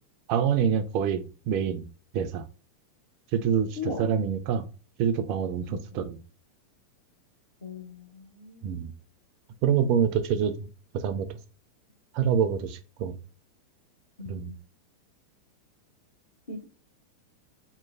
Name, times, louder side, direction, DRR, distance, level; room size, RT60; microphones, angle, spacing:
voice 1, 0.3-1.8 2.1-2.4 3.3-4.7 5.0-6.2 8.6-8.9 9.6-10.7 10.9-11.4 12.1-13.2 14.3-14.5, right 7 dB, 45° right, 0.3 m, -26 dB
voice 2, 3.8-4.1 5.7-6.0 7.6-8.7 14.2-14.6 16.5-16.6, left 3 dB, 65° left, 0.8 m, -38 dB
3.0 x 2.0 x 2.4 m
figure-of-eight pair, 90°, 0 cm